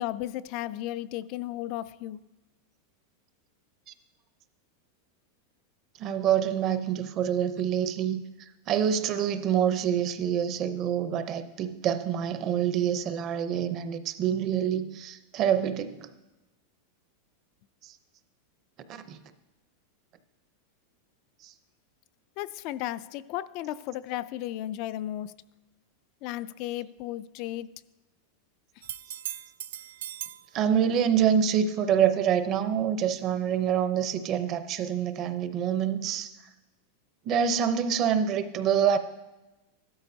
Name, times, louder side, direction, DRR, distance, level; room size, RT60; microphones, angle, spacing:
voice 1, 0.0-2.2 22.4-25.3 26.2-27.7, left 14 dB, 40° left, 16 dB, 0.3 m, -34 dB
voice 2, 6.0-8.2 8.7-16.1 17.8-17.9 18.9-19.2 30.5-36.3 37.3-39.0, right 8 dB, 30° right, 10 dB, 0.6 m, -26 dB
sound 1, 28.8-30.5 34.1-34.2, right 11 dB, 85° right, 0.4 m, -38 dB
15.5 x 12.5 x 2.7 m, 1.1 s
supercardioid pair, 170°, 0 cm